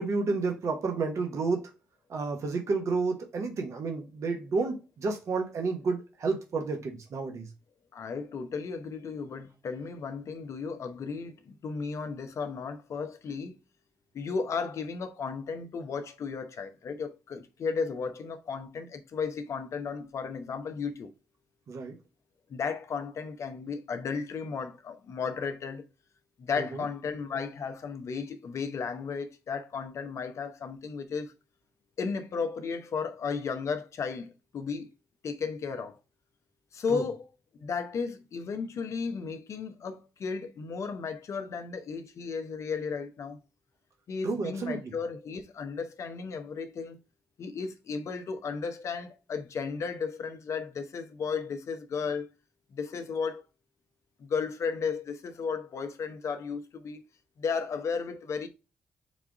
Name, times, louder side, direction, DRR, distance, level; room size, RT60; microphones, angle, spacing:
voice 1, 0.0-1.7 2.1-7.5 21.7-22.0 26.6-26.8 36.9-37.0 44.2-44.9, right 4 dB, 60° right, 0.9 m, -31 dB
voice 2, 7.9-13.6 14.1-21.1 22.5-25.8 26.4-31.3 32.0-34.9 35.2-36.0 36.7-37.2 37.6-43.4 44.1-47.0 47.4-52.3 52.7-53.4 54.2-57.0 57.4-58.5, left 5 dB, 60° left, 0.7 m, -34 dB
4.1 x 2.4 x 4.7 m
supercardioid pair, 50°, 6 cm